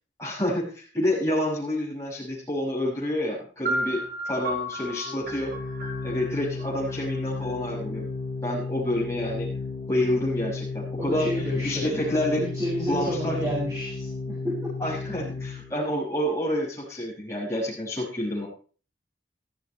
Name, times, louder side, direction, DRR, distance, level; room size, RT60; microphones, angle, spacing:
voice 1, 0.2-4.0 4.2-5.5 6.0-8.0 8.4-9.5 9.9-11.3 11.6-12.4 12.9-13.4 14.8-18.5, left 1 dB, 15° left, -7 dB, 6.5 m, -28 dB
sound 1, 3.6-7.5, right 1 dB, 50° right, 3.8 m, -33 dB
Organ, 5.0-15.8, left 3 dB, 30° left, 4.0 m, -33 dB
voice 2, 11.0-12.1 12.4-14.6, equal, 20° right, -7 dB, 6.1 m, -30 dB
15.5 x 14.0 x 3.3 m, 0.38 s
head